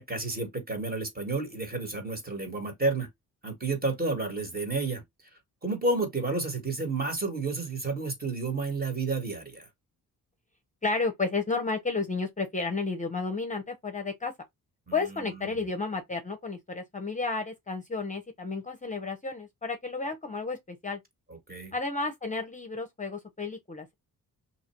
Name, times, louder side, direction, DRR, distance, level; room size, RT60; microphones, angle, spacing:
voice 1, 0.0-3.1 3.4-5.0 5.6-9.7 14.9-15.2 21.5-21.7, right 3 dB, 25° right, 1.6 m, -31 dB
voice 2, 10.8-14.3 14.9-21.0 21.7-23.9, left 3 dB, 20° left, 0.8 m, -32 dB
2.9 x 2.5 x 4.3 m
cardioid pair, 85°, 36 cm